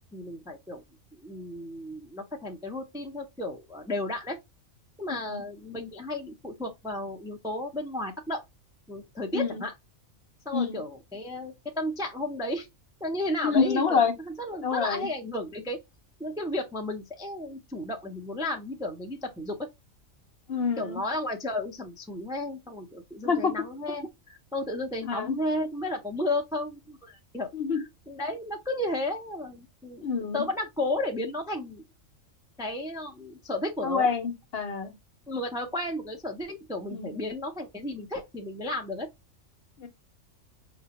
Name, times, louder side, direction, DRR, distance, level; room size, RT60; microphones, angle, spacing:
voice 1, 0.1-0.8 1.1-4.4 5.0-8.4 8.9-9.7 10.4-12.7 13.0-15.8 16.2-19.7 20.8-31.8 32.6-34.1 35.3-39.1, left 1 dB, 5° right, 0.4 m, -33 dB
voice 2, 13.4-14.1 14.6-15.1 20.5-21.0 23.2-23.5 25.0-25.4 27.5-27.8 30.0-30.4 33.8-34.9 36.9-37.2 39.8-39.9, left 5 dB, 55° left, 0.9 m, -27 dB
5.0 x 2.2 x 2.8 m
omnidirectional pair, 1.4 m